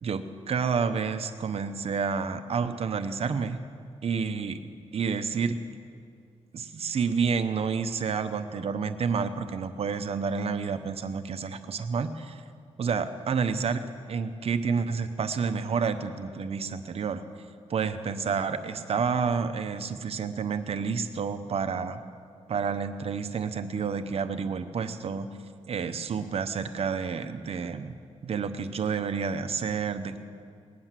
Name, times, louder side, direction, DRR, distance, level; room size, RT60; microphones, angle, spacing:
voice 1, 0.0-3.6 4.0-4.6 4.9-5.6 6.5-12.4 12.8-17.2 17.7-22.0 22.5-25.3 25.7-27.9 28.2-30.2, right 5 dB, 60° right, 8 dB, 0.8 m, -29 dB
19.0 x 9.7 x 7.5 m, 2.3 s
wide cardioid pair, 175°, 12 cm